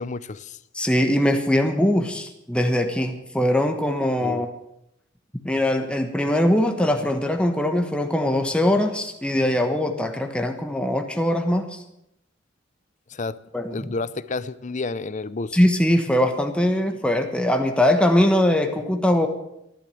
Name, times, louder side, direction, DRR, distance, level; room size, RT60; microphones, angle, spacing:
voice 1, 0.0-0.6 4.2-4.5 13.1-13.4 13.7-15.6, left 3 dB, 40° left, 16 dB, 0.6 m, -30 dB
voice 2, 0.7-4.5 5.4-11.8 13.5-13.9 15.5-19.3, left 1 dB, 5° left, 5 dB, 1.2 m, -21 dB
14.0 x 12.0 x 7.7 m, 0.83 s
head